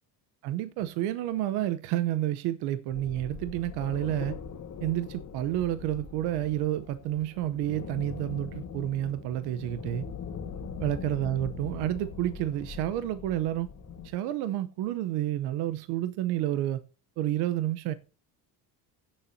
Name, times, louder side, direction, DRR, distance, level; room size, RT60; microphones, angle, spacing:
voice 1, 0.4-4.4 4.8-10.1 10.8-13.7 14.0-16.8 17.2-17.9, right 13 dB, 85° right, 0.8 m, -30 dB
Atmosphere Cave (Loop), 2.9-14.1, left 6 dB, 45° left, 1.6 m, -41 dB
16.5 x 7.3 x 2.7 m
cardioid pair, 100°, 39 cm